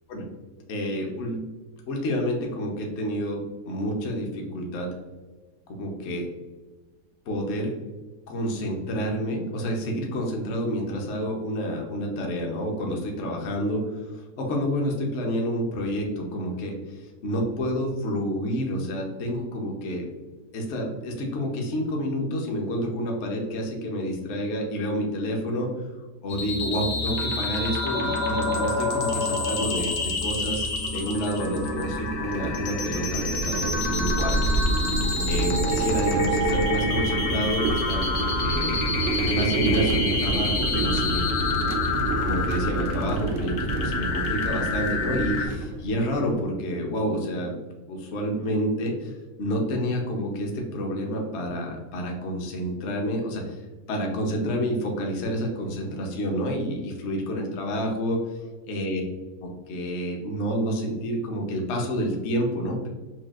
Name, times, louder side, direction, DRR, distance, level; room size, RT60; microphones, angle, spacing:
voice 1, 0.7-1.4 1.9-4.9 5.7-6.3 7.3-7.7 8.3-16.7 17.2-20.1 20.5-25.7 26.2-34.7 35.3-38.8 39.2-41.2 42.2-47.6 47.9-49.1 49.4-53.6 53.9-58.2 58.7-59.0 59.7-62.9, equal, 55° left, 1 dB, 0.8 m, -29 dB
sound 1, 26.3-45.5, left 2 dB, 80° left, 1.3 m, -28 dB
sound 2, 31.3-46.3, right 2 dB, 70° right, 0.7 m, -28 dB
5.9 x 2.3 x 2.4 m, 1.3 s
omnidirectional pair, 1.8 m